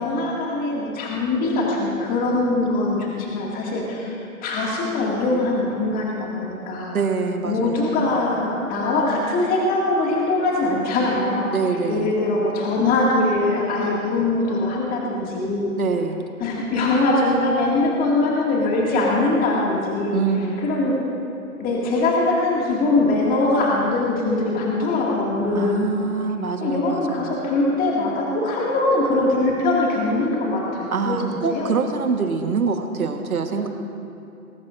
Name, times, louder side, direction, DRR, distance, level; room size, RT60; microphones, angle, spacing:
voice 1, 0.0-7.0 7.4-11.5 11.9-15.7 16.4-21.0 21.6-26.0 26.6-31.7 33.6-33.7, left 2 dB, 20° left, -3 dB, 2.1 m, -22 dB
voice 2, 6.9-7.9 11.5-12.1 15.8-16.2 20.1-20.6 25.5-27.3 30.9-33.7, right 5 dB, 70° right, 5 dB, 1.5 m, -25 dB
20.5 x 19.0 x 2.6 m, 2.8 s
figure-of-eight pair, 125°, 45 cm